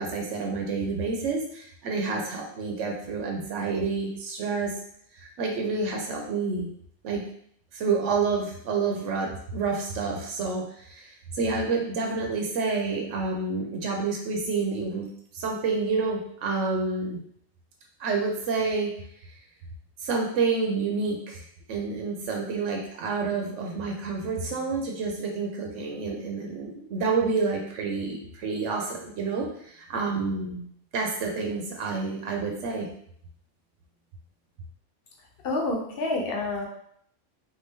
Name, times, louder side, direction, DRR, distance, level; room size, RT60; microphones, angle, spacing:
voice 1, 0.0-4.7 5.4-6.7 7.0-7.2 7.7-15.1 15.3-17.2 18.0-18.9 20.0-30.7 30.9-32.9, right 4 dB, 80° right, 1 dB, 1.0 m, -29 dB
voice 2, 35.4-36.7, left 2 dB, 55° left, 1 dB, 1.0 m, -28 dB
4.1 x 2.7 x 3.6 m, 0.67 s
omnidirectional pair, 1.3 m